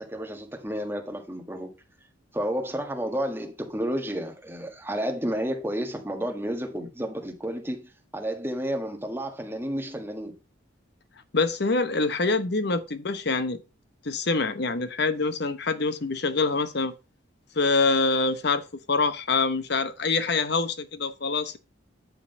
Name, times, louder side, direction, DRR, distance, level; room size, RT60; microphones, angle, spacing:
voice 1, 0.0-1.7 2.3-10.3, equal, 10° right, 1.6 m, -31 dB
voice 2, 11.3-13.6 14.0-16.9 17.6-21.6, left 3 dB, 55° left, 0.9 m, -25 dB
10.0 x 3.9 x 5.3 m
head